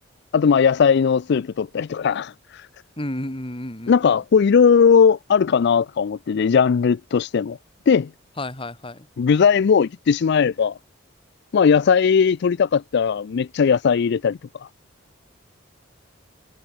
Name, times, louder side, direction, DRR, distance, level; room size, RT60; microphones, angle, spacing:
voice 1, 0.3-2.7 3.9-7.6 7.9-8.1 9.2-10.8 11.5-14.4, left 6 dB, 60° left, 0.4 m, -18 dB
voice 2, 3.0-4.2 8.4-9.1, left 1 dB, 25° left, 3.0 m, -31 dB
head